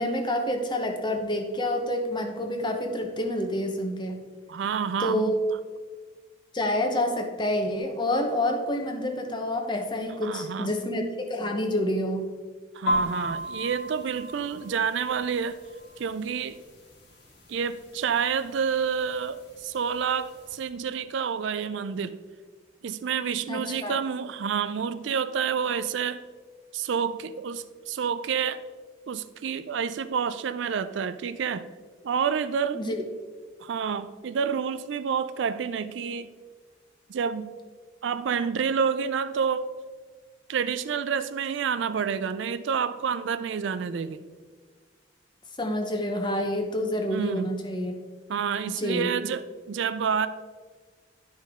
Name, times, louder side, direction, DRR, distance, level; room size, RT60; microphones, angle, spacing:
voice 1, 0.0-4.2 5.0-5.5 6.5-12.3 23.5-24.0 32.7-33.0 45.6-47.9 48.6-49.1, left 1 dB, 25° left, 4 dB, 0.9 m, -28 dB
voice 2, 4.5-5.3 10.2-10.7 12.7-15.6 16.0-16.6 17.5-22.2 22.8-26.2 26.7-28.6 29.1-31.7 32.0-32.8 33.6-36.3 37.1-37.5 38.0-39.7 40.5-44.2 47.1-47.6 48.3-50.3, right 6 dB, 65° right, 13 dB, 0.4 m, -28 dB
sound 1, 12.9-20.7, equal, 60° left, 1.7 m, -36 dB
11.0 x 5.3 x 3.7 m, 1.5 s
head